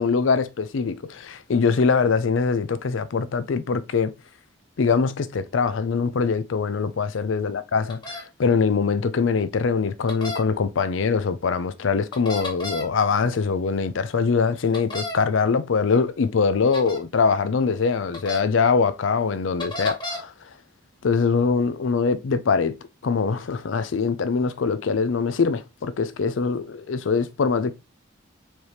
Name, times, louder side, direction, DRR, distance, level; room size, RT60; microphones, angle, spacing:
voice 1, 0.0-4.1 4.8-20.3 21.0-22.7 23.0-27.7, left 5 dB, 75° left, 0.5 m, -23 dB
sound 1, 7.9-8.2 10.1-10.4 12.1-12.9 14.7-15.2 16.7-17.0 18.1-18.4 19.6-20.2, left 2 dB, 20° left, 1.1 m, -32 dB
4.5 x 3.3 x 2.8 m
head